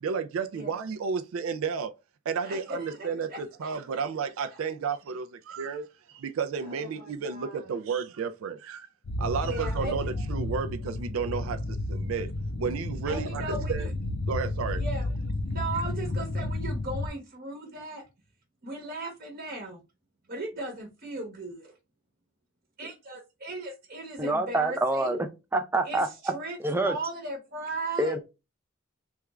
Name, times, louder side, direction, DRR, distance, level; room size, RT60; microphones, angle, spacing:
voice 1, 0.0-1.9 2.3-8.9 9.2-12.3 12.6-13.9 14.3-14.8, right 5 dB, 75° right, 0.4 m, -32 dB
voice 2, 2.4-4.0 6.6-7.7 9.4-10.1 13.1-13.9 14.8-15.1 15.5-18.0 18.6-19.8 20.3-21.7 22.8-25.2 25.8-26.6 26.8-28.2, right 2 dB, 40° right, 1.0 m, -37 dB
sound 1, 9.0-17.1, left 2 dB, 70° left, 0.6 m, -32 dB
voice 3, 24.2-26.3 26.6-27.0 28.0-28.2, right 2 dB, 10° right, 0.4 m, -27 dB
3.4 x 2.3 x 3.0 m
head